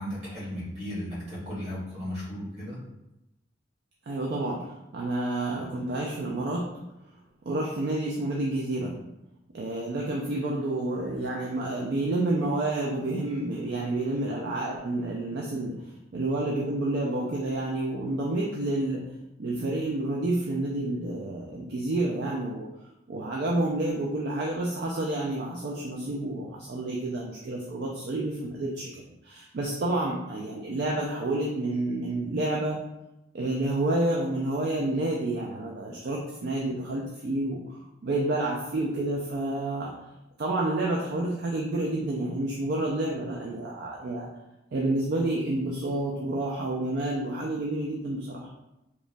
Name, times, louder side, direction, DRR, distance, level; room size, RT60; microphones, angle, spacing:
voice 1, 0.0-2.8, equal, 35° right, -9 dB, 1.3 m, -35 dB
voice 2, 4.1-6.6 7.5-9.0 9.5-19.0 19.4-22.7 23.1-32.8 33.3-39.9 40.4-44.3 44.7-48.5, right 2 dB, 50° right, -2 dB, 0.3 m, -29 dB
3.0 x 2.1 x 2.5 m, 0.92 s
head